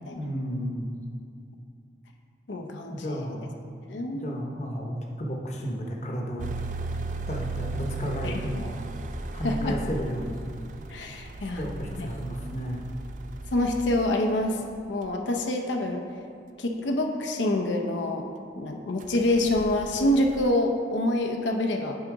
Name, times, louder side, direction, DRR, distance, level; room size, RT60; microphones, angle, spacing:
voice 1, 0.2-0.9 2.9-3.5 4.1-4.9 5.2-6.5 7.3-10.5 11.4-12.9, equal, 40° left, 0 dB, 0.8 m, -33 dB
voice 2, 2.5-3.3 3.9-4.3 8.2-8.3 9.4-9.8 10.9-11.6 12.0-12.1 13.5-14.6 14.9-16.0 16.6-18.3 18.6-22.0, left 1 dB, 90° left, 3 dB, 0.6 m, -26 dB
sound 1, 6.4-14.1 15.0-15.1 19.0-20.5, right 3 dB, 45° right, 0.3 m, -36 dB
9.5 x 3.9 x 4.7 m, 2.4 s
head